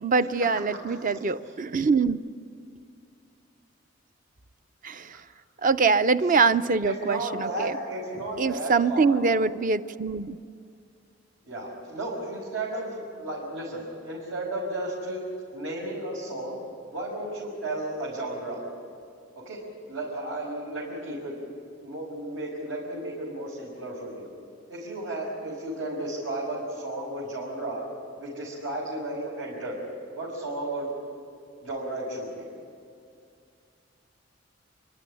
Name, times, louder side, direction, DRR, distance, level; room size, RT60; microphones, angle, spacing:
voice 1, 0.0-2.2 4.8-5.2 5.6-7.8 8.4-10.4, right 4 dB, 45° right, 12 dB, 0.6 m, -24 dB
voice 2, 6.8-9.2 11.4-15.2 15.5-16.6 16.9-18.6 19.4-19.6 19.9-21.4 21.8-24.3 24.7-27.8 28.2-29.8 30.1-30.9 31.6-32.5, right 1 dB, 85° right, -6 dB, 5.7 m, -33 dB
29.0 x 12.5 x 10.0 m, 2.4 s
head